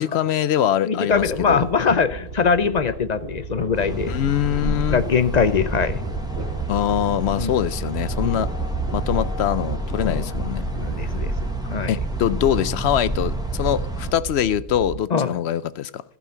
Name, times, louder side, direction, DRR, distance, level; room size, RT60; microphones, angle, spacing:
voice 1, 0.0-1.7 4.1-5.0 6.7-8.5 8.9-10.7 11.9-16.0, left 10 dB, 85° left, 0.9 m, -23 dB
voice 2, 0.8-4.1 4.6-6.0 7.3-7.5 8.2-8.4 10.0-10.3 10.8-11.3 11.6-11.9 15.1-15.4, left 5 dB, 50° left, 0.6 m, -22 dB
sound 1, 1.1-15.0, right 9 dB, 80° right, 0.9 m, -36 dB
sound 2, 1.3-11.1, equal, 60° right, 2.0 m, -41 dB
sound 3, 3.7-14.1, right 1 dB, 5° right, 1.3 m, -28 dB
15.0 x 5.7 x 5.6 m
omnidirectional pair, 1.1 m